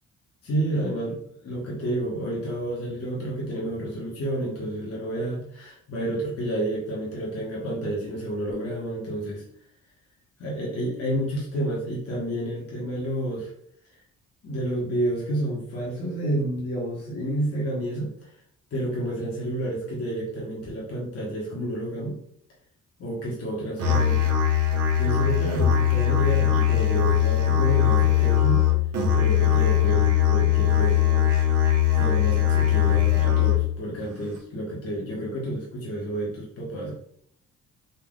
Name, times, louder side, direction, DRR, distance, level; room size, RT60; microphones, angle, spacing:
voice 1, 0.4-1.2 1.4-9.4 10.4-13.5 14.4-18.3 18.7-22.2 23.0-24.4 25.0-28.6 29.1-31.3 31.9-36.9, right 1 dB, 50° left, -4 dB, 1.6 m, -30 dB
Musical instrument, 23.8-33.8, left 10 dB, 55° right, 1.2 m, -21 dB
4.2 x 2.7 x 3.9 m, 0.66 s
cardioid pair, 90°, 30 cm